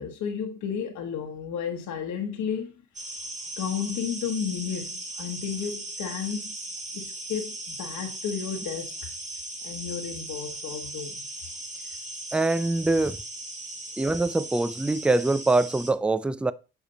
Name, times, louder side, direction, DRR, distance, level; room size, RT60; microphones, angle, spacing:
voice 1, 0.0-2.7 3.6-6.6 6.9-9.1 9.6-11.2, left 7 dB, 80° left, 1.3 m, -32 dB
sound 1, 2.9-15.9, right 1 dB, 25° right, 1.9 m, -38 dB
voice 2, 12.3-13.2 14.0-16.5, right 2 dB, 5° right, 0.4 m, -24 dB
8.1 x 5.0 x 4.1 m
cardioid pair, 90°, 30 cm